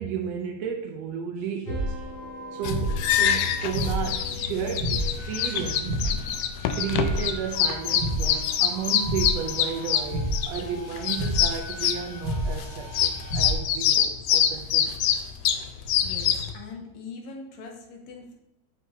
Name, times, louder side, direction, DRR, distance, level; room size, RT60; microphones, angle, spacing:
voice 1, 0.0-2.1 2.5-6.1 6.7-14.9, right 7 dB, 75° right, 3 dB, 1.5 m, -33 dB
sound 1, 1.6-13.5, equal, 45° left, 3.1 m, -32 dB
sound 2, 2.6-16.5, left 9 dB, 90° left, 1.4 m, -25 dB
voice 2, 16.0-18.3, left 4 dB, 70° left, 2 dB, 2.1 m, -41 dB
7.6 x 5.9 x 2.7 m, 0.96 s
omnidirectional pair, 3.4 m